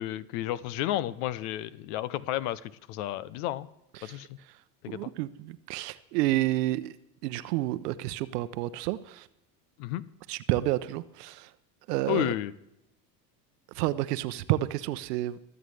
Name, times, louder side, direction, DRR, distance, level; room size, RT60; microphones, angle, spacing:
voice 1, 0.0-2.6 2.9-3.7 4.0-4.3 4.8-5.1 9.8-10.0 12.1-12.5, left 13 dB, 60° left, 20 dB, 0.8 m, -31 dB
voice 2, 4.9-6.9 7.2-9.2 10.3-11.5 11.9-12.3 13.8-15.4, right 16 dB, 70° right, 15 dB, 0.8 m, -30 dB
23.5 x 8.0 x 3.3 m, 0.88 s
hypercardioid pair, 80°, 50 cm